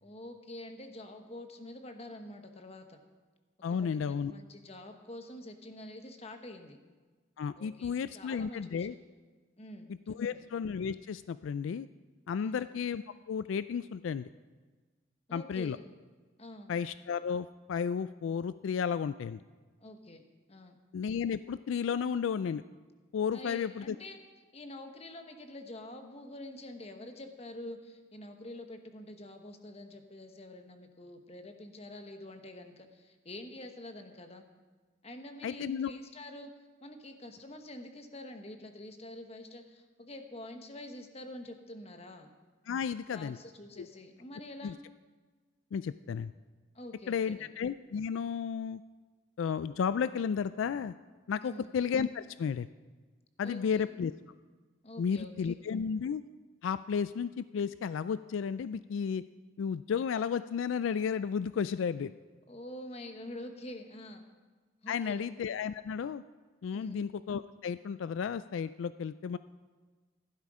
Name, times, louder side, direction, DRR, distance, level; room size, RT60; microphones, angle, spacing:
voice 1, 0.0-3.0 3.8-6.8 7.6-9.0 9.6-10.4 12.4-12.7 15.3-15.8 16.4-16.7 19.8-20.2 20.5-20.8 23.3-24.2 24.5-34.4 35.0-36.5 36.8-42.3 43.1-44.8 46.7-47.5 51.4-51.7 53.4-53.8 54.8-55.5 62.5-64.2 64.8-65.3 66.7-67.0, left 1 dB, 30° left, 6 dB, 1.2 m, -46 dB
voice 2, 3.6-4.3 7.4-8.9 10.1-11.9 12.3-14.3 15.3-15.8 16.7-19.4 20.9-22.6 23.1-24.0 35.4-35.9 42.7-43.4 43.8-43.9 44.6-44.7 45.7-46.3 47.1-48.8 49.4-50.9 51.3-52.7 53.4-54.1 55.0-56.2 56.6-59.2 59.6-62.1 64.9-66.2 66.6-69.4, left 6 dB, 80° left, 14 dB, 0.3 m, -33 dB
15.0 x 12.0 x 4.9 m, 1.4 s
head